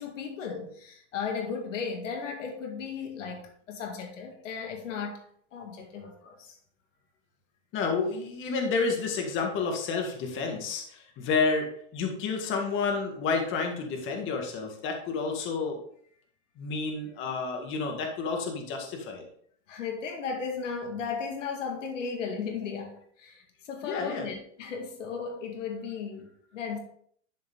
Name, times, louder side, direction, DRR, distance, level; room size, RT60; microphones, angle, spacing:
voice 1, 0.0-5.2 5.5-6.5 19.7-26.8, left 5 dB, 85° left, 3 dB, 2.1 m, -35 dB
voice 2, 7.7-15.8 16.6-19.2 23.8-24.3, left 4 dB, 35° left, 3 dB, 1.9 m, -30 dB
11.5 x 5.2 x 3.8 m, 0.62 s
supercardioid pair, 145°, 36 cm